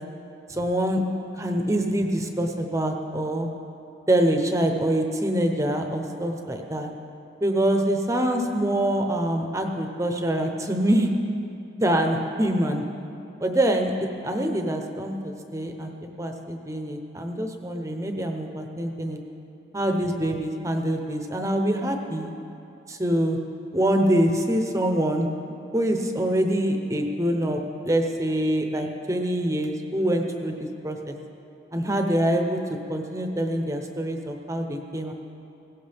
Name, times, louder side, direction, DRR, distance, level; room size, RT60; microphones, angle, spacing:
voice 1, 0.5-1.0 1.4-3.5 4.1-6.9 7.4-11.1 11.8-12.8 13.4-13.9 14.2-15.9 16.2-19.2 19.7-22.3 22.9-23.4 23.7-25.3 25.7-31.2 31.7-32.6 32.9-35.1, right 1 dB, 15° right, 4 dB, 0.8 m, -25 dB
17.5 x 17.0 x 3.5 m, 2.7 s
head